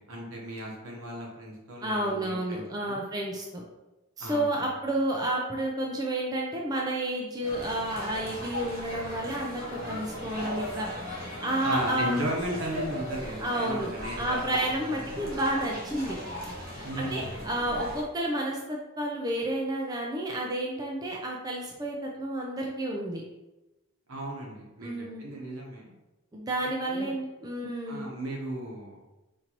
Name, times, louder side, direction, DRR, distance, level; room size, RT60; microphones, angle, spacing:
voice 1, 0.0-3.0 4.2-4.7 11.6-15.3 16.8-17.5 24.1-25.9 26.6-27.1 27.9-29.0, right 1 dB, 80° right, -3 dB, 1.1 m, -36 dB
voice 2, 1.8-3.6 4.2-12.2 13.4-13.9 14.2-16.2 16.7-23.2 24.8-25.3 26.3-28.1, right 1 dB, 20° right, -2 dB, 0.3 m, -31 dB
sound 1, 7.4-18.0, left 1 dB, 45° right, 1.0 m, -38 dB
4.4 x 2.6 x 2.9 m, 1.0 s
head